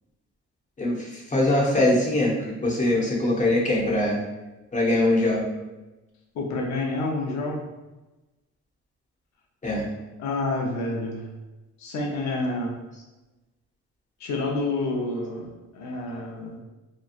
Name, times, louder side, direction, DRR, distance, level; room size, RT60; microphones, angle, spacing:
voice 1, 1.3-2.3 2.6-4.2 4.7-5.4 9.6-9.8, left 1 dB, 25° left, -4 dB, 0.9 m, -22 dB
voice 2, 6.3-7.7 10.2-11.3 11.8-12.8 14.2-16.6, left 2 dB, 65° left, 0 dB, 0.7 m, -28 dB
2.8 x 2.2 x 2.4 m, 1.1 s
cardioid pair, 90°, 30 cm